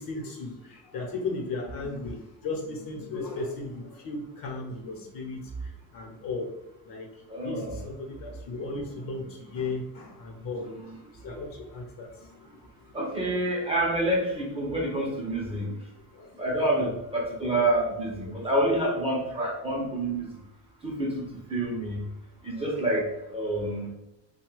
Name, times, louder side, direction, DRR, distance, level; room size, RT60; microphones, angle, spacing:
voice 1, 0.0-6.5 6.8-12.7 13.2-13.4 14.9-15.0 15.5-15.7 16.1-16.6 18.2-18.5, left 3 dB, 55° left, 0 dB, 1.0 m, -36 dB
voice 2, 7.3-7.8 11.3-11.4 12.9-15.7 16.4-20.3 20.8-22.0 22.4-23.9, right 1 dB, 15° right, -2 dB, 0.7 m, -28 dB
2.8 x 2.3 x 3.2 m, 0.86 s
cardioid pair, 110°, 40 cm